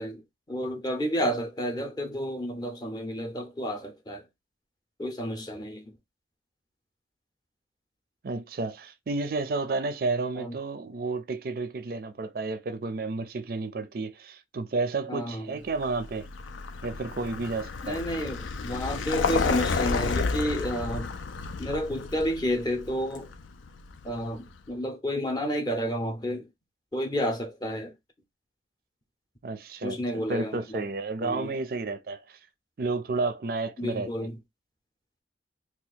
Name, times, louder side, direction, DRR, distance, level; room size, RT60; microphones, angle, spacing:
voice 1, 0.0-4.3 5.0-6.0 10.4-10.5 15.1-15.5 17.8-21.1 21.6-23.3 24.0-26.5 26.9-28.0 29.8-30.8 31.2-31.5 33.8-34.4, equal, 20° left, 0.6 m, -31 dB
voice 2, 8.2-16.3 16.8-18.0 29.4-30.0 30.3-32.4 32.8-34.1, right 3 dB, 50° right, 0.4 m, -31 dB
Vehicle, 15.7-24.5, left 4 dB, 90° left, 0.5 m, -31 dB
2.8 x 2.3 x 4.0 m
head